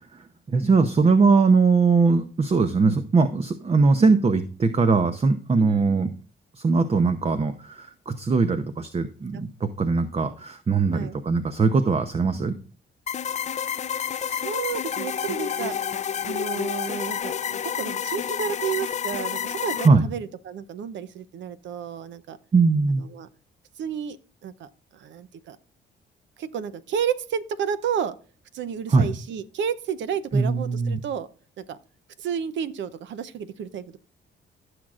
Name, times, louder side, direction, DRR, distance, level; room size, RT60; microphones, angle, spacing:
voice 1, 0.5-6.1 6.6-9.5 9.8-12.6 19.8-20.1 22.5-23.0 28.9-29.1 30.3-31.0, right 4 dB, 30° right, 9 dB, 0.7 m, -20 dB
voice 2, 5.5-6.1 9.3-9.4 10.9-11.2 14.2-15.8 16.2-17.3 17.6-19.8 20.0-22.4 23.0-23.3 23.8-25.6 26.4-28.2 28.5-31.3 31.6-31.8 32.2-34.0, right 8 dB, 70° right, 14 dB, 0.7 m, -31 dB
sound 1, 13.1-19.9, left 8 dB, 35° left, 0.4 m, -29 dB
14.5 x 6.3 x 2.5 m, 0.39 s
cardioid pair, 90°, 20 cm